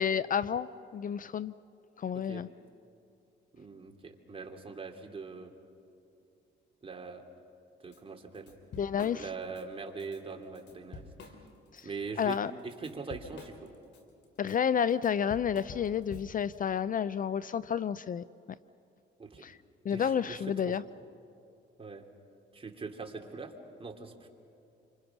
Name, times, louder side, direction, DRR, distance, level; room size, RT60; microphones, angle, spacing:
voice 1, 0.0-1.5 2.0-2.5 8.7-9.3 11.7-11.9 12.2-12.5 14.4-18.2 19.4-19.6 19.8-20.8, left 8 dB, 45° left, 16 dB, 0.5 m, -30 dB
voice 2, 2.1-2.4 3.5-5.5 6.8-7.2 7.8-8.5 9.0-11.4 11.8-12.4 12.6-13.7 19.2-19.4 19.9-20.8 21.8-22.0 22.5-23.5 23.8-24.3, right 4 dB, 30° right, 2 dB, 2.9 m, -42 dB
Drum kit / Drum, 7.9-8.0 8.3-9.6 10.0-10.2 10.6-11.8 12.2-16.6, left 3 dB, 60° left, 3.0 m, -48 dB
28.0 x 25.5 x 6.0 m, 2.7 s
cardioid pair, 90°, 20 cm